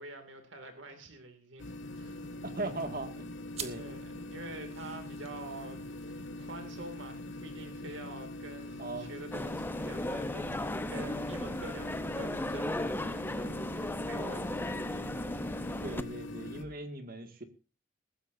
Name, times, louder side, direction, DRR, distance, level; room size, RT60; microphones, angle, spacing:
voice 1, 0.0-2.2 3.8-14.8, right 2 dB, 85° right, 6 dB, 2.5 m, -47 dB
sound 1, 1.6-16.6, left 1 dB, 80° left, 1.9 m, -43 dB
voice 2, 2.4-3.8 4.5-4.6 8.8-9.2 15.8-17.4, right 2 dB, 50° right, 6 dB, 2.1 m, -39 dB
sound 2, 3.5-12.5, right 7 dB, 35° right, 1.5 m, -52 dB
sound 3, 9.3-16.0, left 1 dB, 10° left, 0.7 m, -36 dB
19.5 x 15.5 x 2.7 m, 0.33 s
head